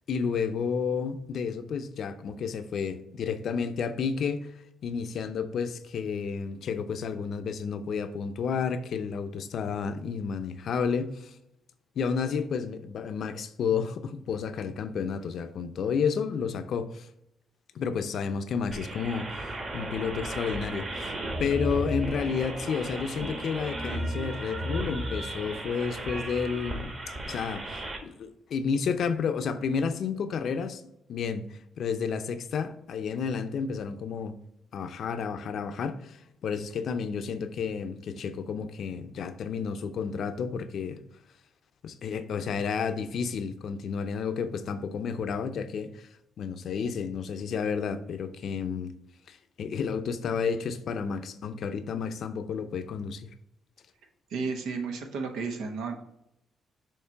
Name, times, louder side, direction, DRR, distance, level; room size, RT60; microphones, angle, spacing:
voice 1, 0.1-4.5 4.8-11.3 12.0-17.1 17.7-21.1 21.4-26.9 27.3-30.8 31.1-34.4 34.7-41.0 41.8-46.1 46.4-48.9 49.3-53.3, left 6 dB, 65° left, 0.6 m, -31 dB
sound 1, 18.7-28.0, right 1 dB, 35° right, 1.5 m, -34 dB
voice 2, 54.3-56.0, right 4 dB, 85° right, 1.1 m, -32 dB
6.6 x 3.1 x 5.6 m
cardioid pair, 90°, 0 cm